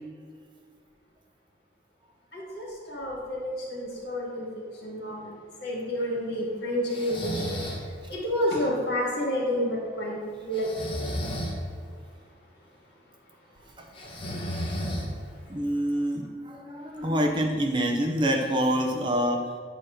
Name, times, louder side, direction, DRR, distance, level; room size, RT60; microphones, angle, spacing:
voice 1, 2.3-5.3 5.6-10.7 13.6-15.5 16.9-17.1, equal, 60° left, -3 dB, 2.0 m, -31 dB
Breathing, 6.9-7.8 10.5-11.6 13.9-15.3, equal, 30° left, 1.0 m, -33 dB
voice 2, 15.5-19.5, equal, 25° right, 2 dB, 0.6 m, -26 dB
8.7 x 2.9 x 6.4 m, 2.1 s
head